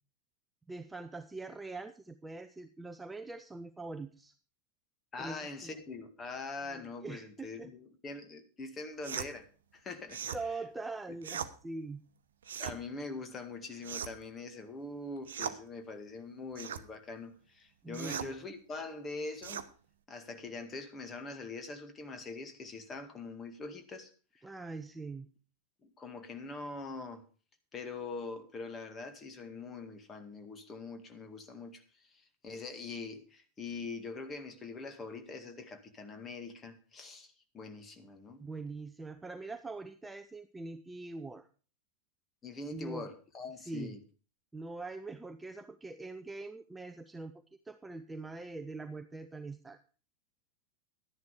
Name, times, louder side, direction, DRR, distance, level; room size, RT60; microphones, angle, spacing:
voice 1, 0.7-4.3 5.2-5.7 6.7-7.7 10.3-12.0 17.8-18.3 24.4-25.3 38.4-41.5 42.7-43.1 43.6-43.9 44.5-47.3 47.6-49.8, right 3 dB, 10° right, 0.7 m, -43 dB
voice 2, 5.1-9.5 9.7-10.4 12.6-19.6 20.1-24.5 25.8-27.2 27.7-38.4 42.4-44.0, left 3 dB, 20° left, 2.0 m, -43 dB
sound 1, 9.0-9.3 10.1-10.4 11.2-11.5 12.4-12.8 13.8-14.3 15.2-15.6 16.5-16.8 17.9-18.3 19.4-19.7, right 8 dB, 65° right, 0.9 m, -39 dB
12.0 x 10.5 x 4.9 m
figure-of-eight pair, 90°, 0 cm